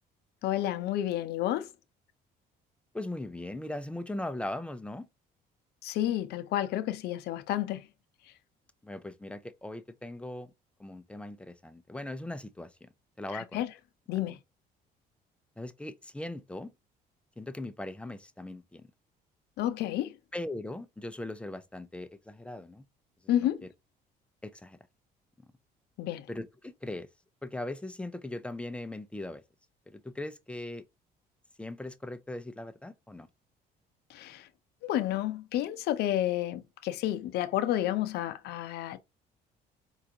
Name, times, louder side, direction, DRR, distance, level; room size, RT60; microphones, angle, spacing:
voice 1, 0.4-1.7 5.8-7.8 13.3-13.7 14.1-14.4 19.6-20.1 23.3-23.7 26.0-26.3 34.1-34.5 34.8-39.0, left 12 dB, 75° left, 0.5 m, -30 dB
voice 2, 2.9-5.1 8.8-10.5 10.8-12.9 13.2-13.6 15.6-16.7 17.4-18.9 20.3-22.8 23.4-23.5 24.4-24.8 26.3-27.1 27.4-29.4 29.9-30.8 31.6-33.3, left 1 dB, 5° left, 0.4 m, -39 dB
4.6 x 2.4 x 2.7 m
cardioid pair, 110°, 17 cm